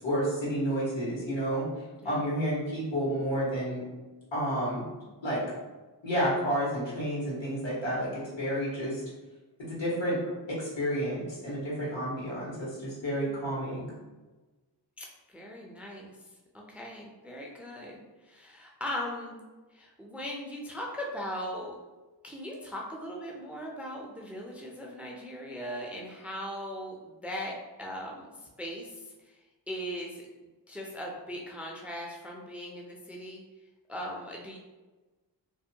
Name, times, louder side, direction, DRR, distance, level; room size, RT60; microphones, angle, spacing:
voice 1, 0.0-1.6 2.0-3.8 4.3-4.8 5.2-5.4 6.0-9.0 9.6-10.2 10.5-13.9, equal, 85° left, -7 dB, 1.3 m, -30 dB
voice 2, 15.3-16.1 16.5-19.4 19.7-21.7 22.2-27.5 27.8-28.3 28.6-29.4 29.7-33.4 33.9-34.6, equal, 5° right, -1 dB, 0.4 m, -39 dB
2.5 x 2.1 x 2.7 m, 1.2 s
wide cardioid pair, 65°, 44 cm